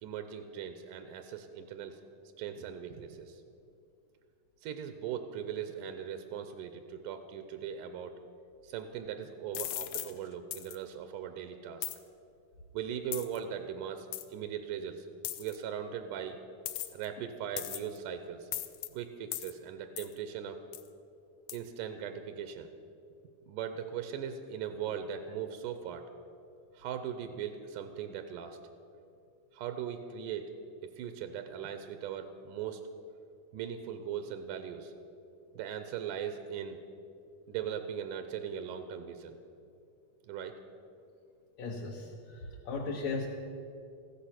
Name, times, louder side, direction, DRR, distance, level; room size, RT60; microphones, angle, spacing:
voice 1, 0.0-2.0 2.4-3.4 4.6-8.1 8.6-11.9 12.7-15.1 15.4-16.4 16.9-18.5 18.9-20.6 21.5-22.7 23.5-26.1 26.7-28.6 29.5-30.5 30.8-32.8 33.5-34.9 35.6-36.8 37.5-39.4 40.3-40.6, right 8 dB, 90° right, 8 dB, 2.3 m, -39 dB
sound 1, 9.5-10.1 10.5-10.8 11.8-12.0 13.1-13.4 14.1-14.2 15.2-15.6 16.7-17.1 17.6-18.0 18.5-18.9 19.3-19.5 20.0-20.1 20.7-20.9 21.5-21.6, left 13 dB, 85° left, 1.4 m, -37 dB
voice 2, 41.6-43.3, left 4 dB, 65° left, -2 dB, 2.1 m, -37 dB
15.0 x 13.0 x 5.9 m, 2.5 s
omnidirectional pair, 3.7 m